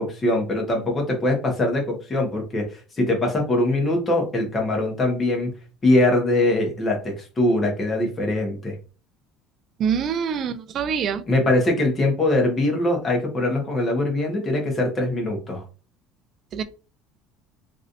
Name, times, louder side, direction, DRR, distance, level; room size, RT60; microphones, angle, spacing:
voice 1, 0.0-5.5 5.8-8.7 11.3-15.6, left 1 dB, 20° left, 1.1 m, -22 dB
voice 2, 9.8-11.2 16.5-16.6, right 7 dB, 40° right, 0.3 m, -25 dB
3.1 x 2.6 x 2.6 m
cardioid pair, 140°, 0 cm